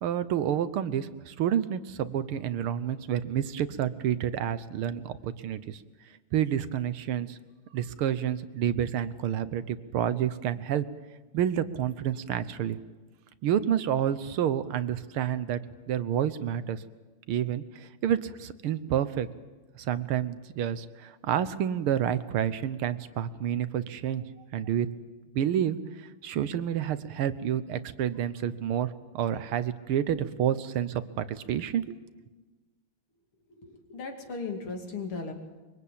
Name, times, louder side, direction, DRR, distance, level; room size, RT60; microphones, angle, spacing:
voice 1, 0.0-5.8 6.3-7.4 7.7-10.9 11.3-12.8 13.4-15.6 15.9-16.8 17.3-19.3 19.8-24.2 24.5-24.9 25.3-32.0, right 10 dB, 80° right, 13 dB, 1.9 m, -29 dB
voice 2, 33.5-35.3, left 4 dB, 80° left, 3 dB, 3.5 m, -37 dB
23.5 x 23.0 x 8.5 m, 1.3 s
omnidirectional pair, 2.4 m